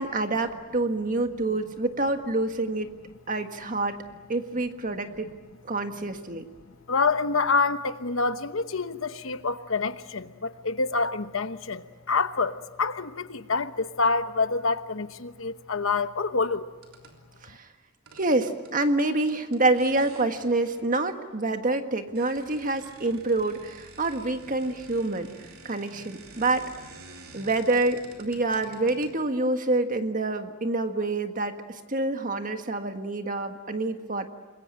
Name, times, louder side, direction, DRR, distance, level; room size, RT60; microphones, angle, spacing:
voice 1, 0.0-2.9 3.3-4.0 4.3-5.3 5.6-6.4 17.4-17.7 18.1-25.3 25.6-26.6 27.3-34.3, right 2 dB, 40° right, 1.7 m, -27 dB
voice 2, 6.9-16.7, left 4 dB, 65° left, 1.0 m, -27 dB
sound 1, 16.8-17.2 18.1-21.2 21.8-21.9 22.1-29.5, right 3 dB, 80° right, 3.5 m, -49 dB
27.0 x 22.0 x 8.8 m
head